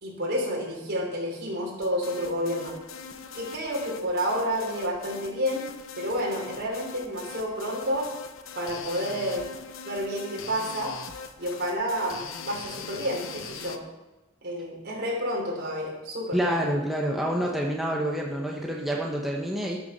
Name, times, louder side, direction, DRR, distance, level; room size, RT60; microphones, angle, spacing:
voice 1, 0.0-2.7 3.3-5.7 6.0-8.1 8.5-9.4 9.8-11.0 11.4-13.8 14.4-16.6, equal, 50° right, -2 dB, 4.3 m, -30 dB
sound 1, 1.8-13.8, left 6 dB, 65° left, 0.9 m, -41 dB
voice 2, 16.3-19.8, equal, ahead, -2 dB, 1.1 m, -27 dB
13.0 x 7.0 x 6.7 m, 1.1 s
head